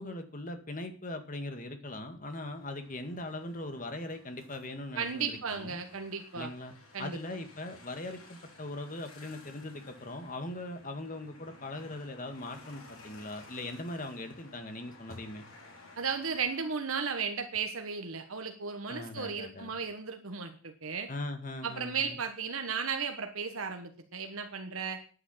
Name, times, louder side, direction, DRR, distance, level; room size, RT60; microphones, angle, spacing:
voice 1, 0.0-5.8 6.4-6.7 7.0-15.4 18.9-19.7 21.1-22.2, left 2 dB, 40° left, 7 dB, 1.9 m, -40 dB
sound 1, 2.3-17.2, left 2 dB, 80° left, 4.6 m, -55 dB
voice 2, 4.9-6.5 6.9-7.2 16.0-21.1 21.6-25.0, right 5 dB, 80° right, 6 dB, 1.3 m, -35 dB
9.9 x 9.6 x 7.4 m, 0.42 s
head